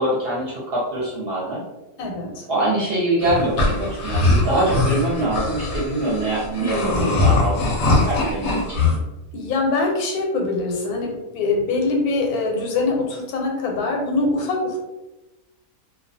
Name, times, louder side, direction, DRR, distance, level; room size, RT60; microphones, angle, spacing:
voice 1, 0.0-1.6 2.5-7.6 7.9-8.6, right 1 dB, 55° right, -6 dB, 0.7 m, -23 dB
voice 2, 2.0-2.5 6.6-7.1 9.3-14.8, left 3 dB, 90° left, 1 dB, 1.1 m, -23 dB
sound 1, 3.2-9.0, left 2 dB, 60° left, 0.7 m, -21 dB
2.3 x 2.2 x 2.6 m, 1.0 s
omnidirectional pair, 1.5 m